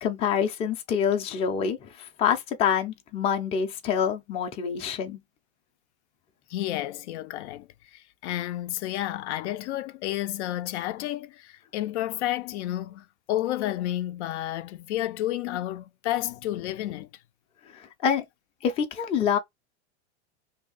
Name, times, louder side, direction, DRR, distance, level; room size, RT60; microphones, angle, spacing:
voice 1, 0.0-5.2 17.7-18.2 18.6-19.4, left 7 dB, 20° left, 0.4 m, -26 dB
voice 2, 6.5-17.1, left 14 dB, 75° left, 0.5 m, -31 dB
2.7 x 2.4 x 3.8 m
supercardioid pair, 145°, 34 cm